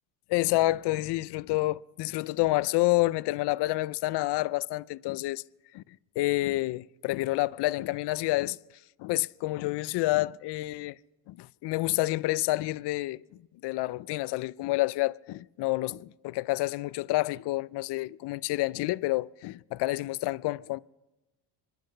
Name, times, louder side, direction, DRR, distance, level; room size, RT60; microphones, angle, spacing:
voice 1, 0.3-5.4 5.7-5.8 6.2-8.6 9.0-11.0 11.3-13.2 13.6-20.8, left 19 dB, 60° left, 0.5 m, -28 dB
25.5 x 10.5 x 5.3 m
cardioid pair, 105°, 45 cm